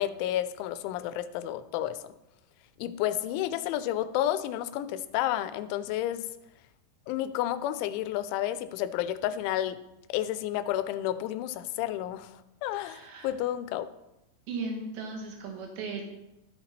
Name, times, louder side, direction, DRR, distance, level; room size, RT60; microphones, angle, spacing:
voice 1, 0.0-2.0 2.8-6.3 7.1-9.8 10.1-12.3 12.6-13.9, left 12 dB, 90° left, 13 dB, 3.0 m, -31 dB
voice 2, 12.8-13.3 14.5-16.0, right 3 dB, 70° right, 1 dB, 3.8 m, -37 dB
13.5 x 6.0 x 4.2 m, 0.92 s
omnidirectional pair, 5.3 m